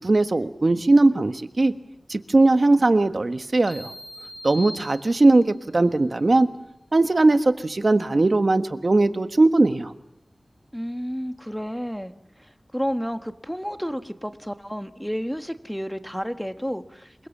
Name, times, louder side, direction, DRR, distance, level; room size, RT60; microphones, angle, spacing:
voice 1, 0.0-1.7 2.1-3.9 4.4-6.5 6.9-9.9, right 2 dB, 55° right, 10 dB, 1.4 m, -19 dB
sound 1, 3.7-5.6, left 1 dB, 50° left, 4.1 m, -40 dB
voice 2, 10.7-12.1 12.4-17.3, equal, 5° left, 9 dB, 1.5 m, -31 dB
28.5 x 23.0 x 7.4 m, 0.82 s
wide cardioid pair, 70°, 0 cm